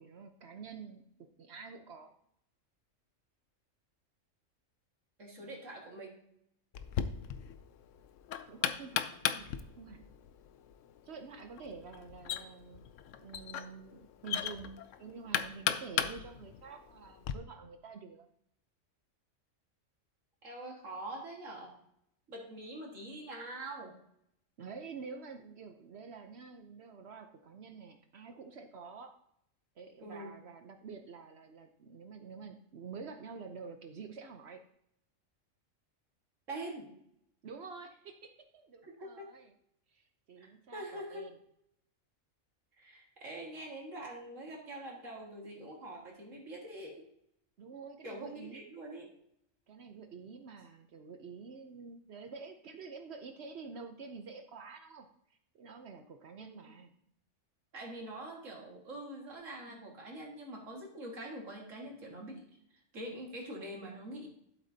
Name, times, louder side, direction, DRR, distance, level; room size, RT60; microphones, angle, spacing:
voice 1, 0.0-2.1 5.4-5.6 8.4-10.0 11.0-12.8 13.2-18.3 24.6-29.2 29.8-34.6 37.4-39.5 39.9-41.3 47.6-48.6 49.7-56.9, right 5 dB, 60° right, 6 dB, 0.9 m, -48 dB
voice 2, 5.2-6.2 20.4-21.7 22.3-23.9 30.0-30.3 36.5-36.9 38.8-39.3 40.4-41.2 42.8-47.1 48.0-49.1 56.4-56.7 57.7-62.4 62.9-64.3, right 1 dB, 75° right, -2 dB, 2.2 m, -44 dB
Knock, 6.7-17.3, left 9 dB, 75° left, 0.9 m, -37 dB
12.0 x 7.6 x 2.8 m, 0.72 s
omnidirectional pair, 1.3 m